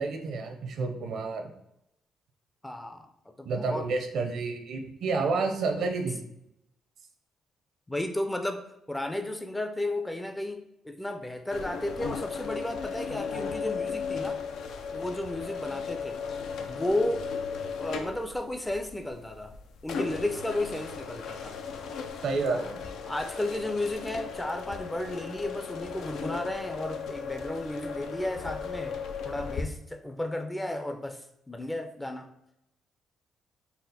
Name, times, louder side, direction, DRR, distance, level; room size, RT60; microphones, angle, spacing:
voice 1, 0.0-1.5 3.4-6.2 22.2-22.8, right 4 dB, 70° right, 5 dB, 0.6 m, -30 dB
voice 2, 2.6-3.1 3.4-3.9 7.9-14.4 14.9-16.2 16.7-17.3 17.6-19.5 19.8-21.6 22.5-22.8 23.1-29.0 29.2-32.3, left 1 dB, 10° left, 6 dB, 0.4 m, -33 dB
sound 1, 11.5-29.6, left 6 dB, 75° left, 0.4 m, -36 dB
4.2 x 2.1 x 3.9 m, 0.81 s
cardioid pair, 90°, 0 cm